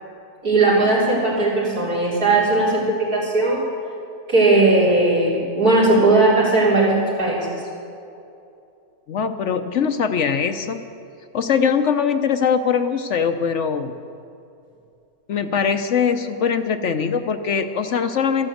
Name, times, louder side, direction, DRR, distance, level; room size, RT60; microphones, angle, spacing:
voice 1, 0.4-3.6 4.3-7.4, right 2 dB, 85° right, -6 dB, 4.6 m, -17 dB
voice 2, 9.1-10.8 11.3-13.9 15.3-18.5, left 6 dB, 60° left, 8 dB, 0.9 m, -21 dB
13.5 x 12.0 x 7.8 m, 2.6 s
omnidirectional pair, 1.6 m